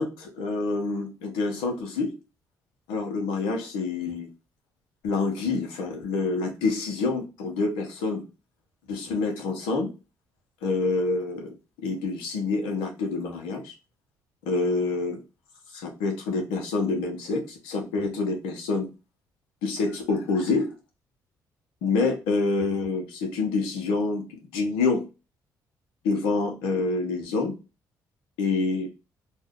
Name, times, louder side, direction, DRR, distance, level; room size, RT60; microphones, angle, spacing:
voice 1, 0.0-2.1 2.9-4.3 5.0-8.2 8.9-9.9 10.6-11.5 11.8-13.7 14.4-15.2 15.7-18.9 19.6-20.7 21.8-25.0 26.0-27.5 28.4-28.9, left 3 dB, 90° left, 2 dB, 0.9 m, -27 dB
2.6 x 2.3 x 3.4 m, 0.29 s
supercardioid pair, 65°, 8 cm